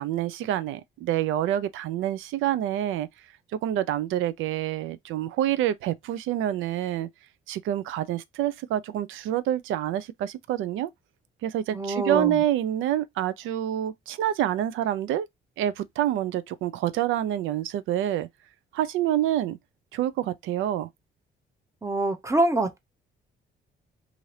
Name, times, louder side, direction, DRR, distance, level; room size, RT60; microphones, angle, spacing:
voice 1, 0.0-3.1 3.6-7.1 7.5-10.9 11.4-15.3 15.6-18.3 18.7-19.6 19.9-20.9, right 12 dB, 85° right, 0.4 m, -27 dB
voice 2, 11.7-12.4 21.8-22.8, right 2 dB, 15° right, 0.7 m, -25 dB
2.7 x 2.5 x 3.1 m
cardioid pair, 90°, 20 cm